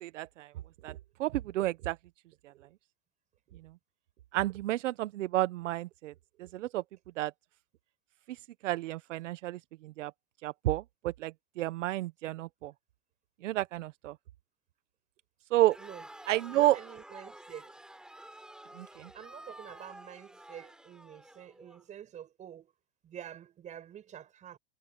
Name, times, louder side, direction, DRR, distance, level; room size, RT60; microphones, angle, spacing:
voice 1, 0.0-0.5 0.8-0.9 1.2-2.0 4.3-6.1 6.5-6.8 7.2-7.3 8.6-9.6 10.0-10.1 10.4-11.3 11.6-12.7 13.4-14.1 15.5-15.8 16.3-16.8 18.8-18.9, right 15 dB, 75° right, 0.9 m, -30 dB
Crowd, 15.6-21.8, right 1 dB, ahead, 3.4 m, -51 dB
voice 2, 16.5-17.7 19.1-22.7 23.0-24.6, right 10 dB, 20° right, 6.7 m, -47 dB
supercardioid pair, 170°, 37 cm